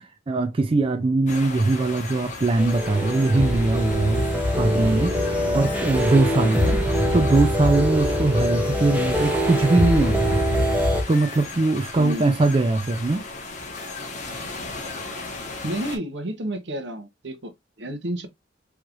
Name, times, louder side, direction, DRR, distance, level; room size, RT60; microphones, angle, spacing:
voice 1, 0.0-6.8 7.1-10.5 11.1-13.2, right 2 dB, 30° right, 0.4 m, -21 dB
sound 1, 1.3-16.0, left 3 dB, 40° left, 1.2 m, -37 dB
sound 2, 2.6-11.0, equal, 10° right, 0.8 m, -23 dB
voice 2, 15.6-18.3, right 1 dB, 70° right, 1.0 m, -31 dB
4.6 x 3.2 x 2.5 m
head